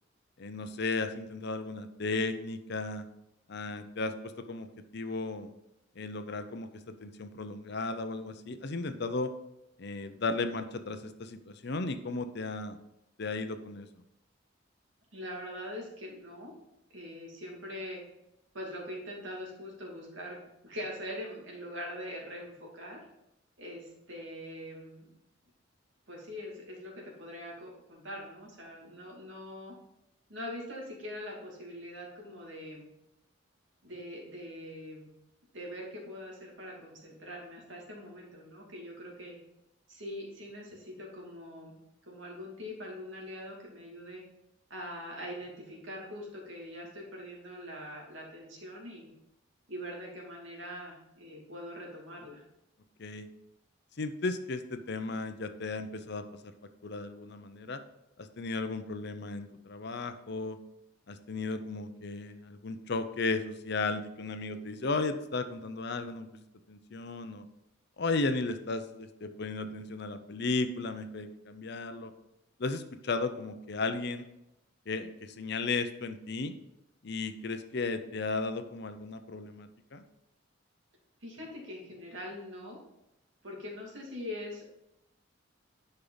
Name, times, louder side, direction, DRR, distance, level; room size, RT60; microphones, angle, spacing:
voice 1, 0.4-3.0 3.5-4.7 4.9-5.5 6.0-6.7 7.0-9.3 9.8-12.8 13.2-13.9 53.0-53.3 54.0-56.2 56.8-57.8 58.2-60.6 61.1-66.3 66.7-67.4 68.0-72.1 72.6-74.2 74.9-76.5 77.0-80.0, left 3 dB, 60° left, 9 dB, 0.7 m, -35 dB
voice 2, 15.1-16.5 16.9-18.0 18.5-20.4 20.6-23.0 23.6-25.1 26.1-29.7 30.3-32.8 33.8-35.1 35.5-39.4 39.9-41.7 42.1-44.2 44.7-49.1 49.7-52.4 81.2-82.8 83.4-84.7, left 1 dB, 75° right, -2 dB, 2.6 m, -43 dB
10.0 x 5.6 x 4.0 m, 0.87 s
head